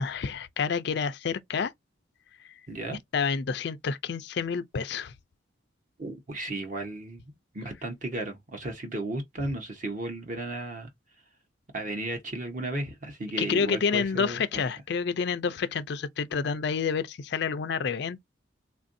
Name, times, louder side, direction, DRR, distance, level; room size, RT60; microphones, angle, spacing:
voice 1, 0.0-1.7 3.1-5.1 13.4-18.2, left 5 dB, 60° left, 0.4 m, -29 dB
voice 2, 2.7-3.0 6.0-10.9 11.7-14.6, right 2 dB, 40° right, 1.0 m, -34 dB
3.6 x 2.5 x 2.6 m
head